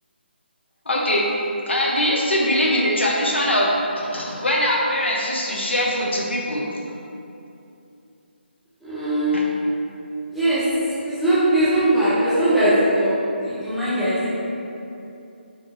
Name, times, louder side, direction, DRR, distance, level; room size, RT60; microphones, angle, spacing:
voice 1, 0.9-1.3 1.7-6.7 9.3-9.4, left 1 dB, 75° left, -3 dB, 0.6 m, -22 dB
voice 2, 8.8-9.4 10.3-10.6 11.0-14.3, right 1 dB, ahead, -13 dB, 0.4 m, -20 dB
3.5 x 2.4 x 2.6 m, 2.7 s
figure-of-eight pair, 145°, 6 cm